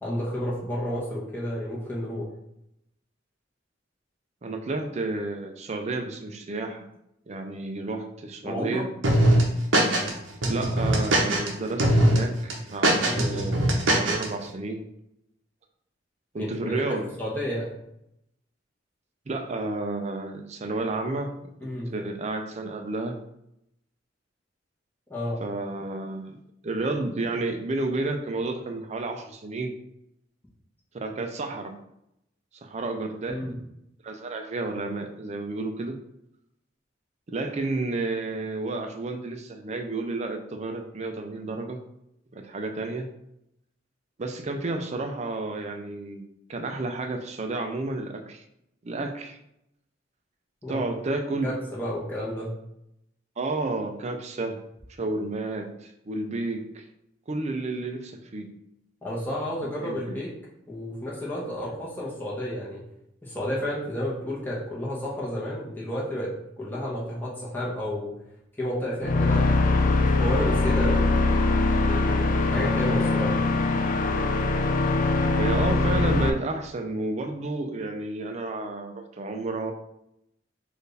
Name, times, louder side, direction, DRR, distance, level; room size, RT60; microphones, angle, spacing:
voice 1, 0.0-2.3 8.4-8.8 13.0-13.3 16.4-17.7 21.6-21.9 25.1-25.4 33.3-33.5 50.6-50.9 51.4-52.5 59.0-60.3 60.7-62.8 63.2-66.3 66.6-68.1 68.6-71.1 71.6-73.6, equal, 10° left, -6 dB, 1.1 m, -31 dB
voice 2, 4.4-6.9 7.3-8.9 10.5-12.4 12.7-14.9 16.3-17.1 19.3-23.2 25.4-29.8 30.9-31.8 32.6-33.4 34.0-36.0 37.3-41.8 42.3-43.1 44.2-46.2 46.5-48.4 48.8-49.4 50.7-51.6 53.4-54.6 55.0-56.8 57.3-58.5 59.8-60.2 75.3-79.7, right 2 dB, 35° right, 5 dB, 0.5 m, -31 dB
sound 1, 9.0-10.1 10.4-11.5 11.8-12.2 12.5-14.3, right 1 dB, 85° right, 0.7 m, -21 dB
sound 2, 69.0-76.3, left 3 dB, 45° left, 0.3 m, -22 dB
4.4 x 2.6 x 3.3 m, 0.80 s
head